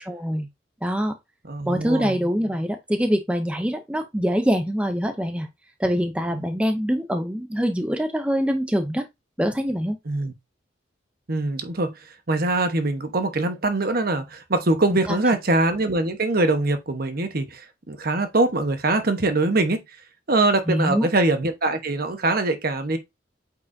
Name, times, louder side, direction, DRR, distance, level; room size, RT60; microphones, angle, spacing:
voice 1, 0.1-0.5 0.8-1.1 1.6-5.5 5.8-9.1 9.4-10.0 15.1-15.2 20.7-21.1, equal, 5° right, 0.5 m, -24 dB
voice 2, 1.5-2.2 6.3-6.5 10.1-10.3 11.3-11.9 12.3-19.8 20.3-23.0, right 2 dB, 50° right, 1.1 m, -23 dB
8.5 x 4.7 x 2.6 m
head